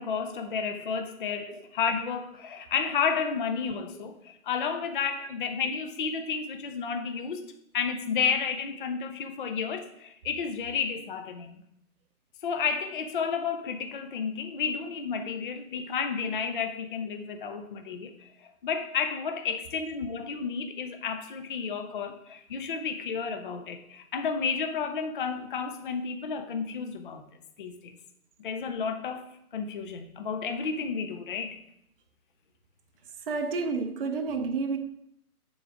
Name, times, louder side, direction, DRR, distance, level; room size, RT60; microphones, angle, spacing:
voice 1, 0.0-7.4 7.7-11.6 12.4-18.3 18.6-27.3 27.6-28.0 28.4-29.2 29.5-31.6, left 6 dB, 35° left, 0.5 m, -31 dB
voice 2, 33.3-34.8, right 4 dB, 40° right, 0.5 m, -30 dB
6.7 x 3.9 x 6.0 m
figure-of-eight pair, 140°, 45 cm